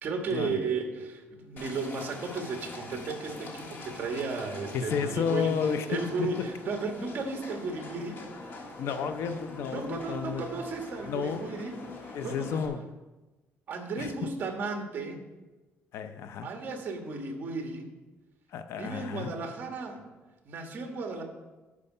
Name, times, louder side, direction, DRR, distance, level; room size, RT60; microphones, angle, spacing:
voice 1, 0.0-5.5 5.9-8.2 9.7-11.8 12.2-12.6 13.7-15.2 16.4-17.9 18.8-20.0 20.4-21.2, right 4 dB, 40° right, 3 dB, 1.5 m, -34 dB
Livestock farm animals working animals, 1.6-12.7, left 3 dB, 45° left, 1.5 m, -44 dB
voice 2, 4.7-6.1 8.8-10.5 11.0-11.4 12.1-12.8 14.0-14.1 15.9-16.5 18.5-19.3, left 6 dB, 65° left, 9 dB, 0.6 m, -31 dB
12.5 x 4.8 x 5.5 m, 1.2 s
cardioid pair, 165°, 5 cm